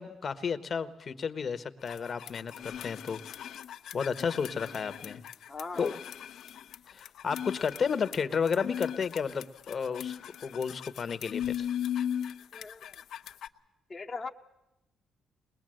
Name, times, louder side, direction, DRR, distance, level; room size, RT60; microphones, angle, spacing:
voice 1, 0.0-3.2 3.9-5.2 5.8-6.0 6.9-11.7, left 6 dB, 45° left, 12 dB, 1.1 m, -32 dB
sound 1, 1.9-13.5, left 9 dB, 70° left, 0.8 m, -38 dB
voice 2, 5.5-6.0 12.5-12.9 13.9-14.3, left 4 dB, 25° left, 2 dB, 1.0 m, -39 dB
21.5 x 20.5 x 7.7 m, 0.92 s
cardioid pair, 90°, 0 cm